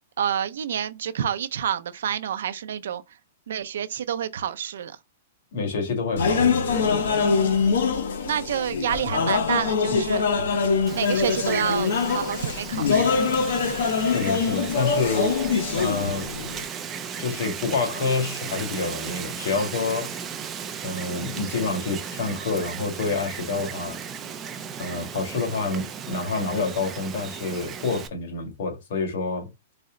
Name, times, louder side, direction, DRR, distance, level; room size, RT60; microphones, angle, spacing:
voice 1, 0.2-3.0 3.5-5.0 7.2-7.8 8.2-10.2 10.9-13.1, right 9 dB, 80° right, 0.5 m, -28 dB
voice 2, 5.5-6.5 14.0-15.4 15.7-16.3 17.2-20.1 20.8-24.0 24.8-29.5, left 4 dB, 55° left, 1.8 m, -28 dB
sound 1, 6.2-16.6, left 5 dB, 75° left, 1.0 m, -24 dB
Wind, 10.9-28.1, right 7 dB, 15° right, 0.5 m, -36 dB
4.1 x 2.1 x 3.7 m
supercardioid pair, 165°, 0 cm